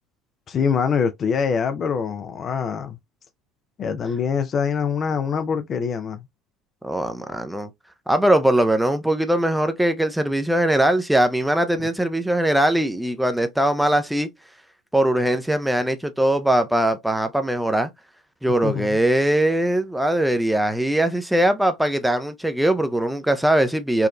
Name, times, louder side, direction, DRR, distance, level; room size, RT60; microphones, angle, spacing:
voice 1, 0.5-3.0 3.8-6.2 11.8-11.9 18.6-19.0, left 6 dB, 40° left, 0.4 m, -24 dB
voice 2, 6.8-7.7 8.1-14.3 14.9-17.9 18.4-24.1, right 1 dB, 5° right, 0.6 m, -21 dB
4.6 x 2.3 x 2.2 m
figure-of-eight pair, 65°, 0 cm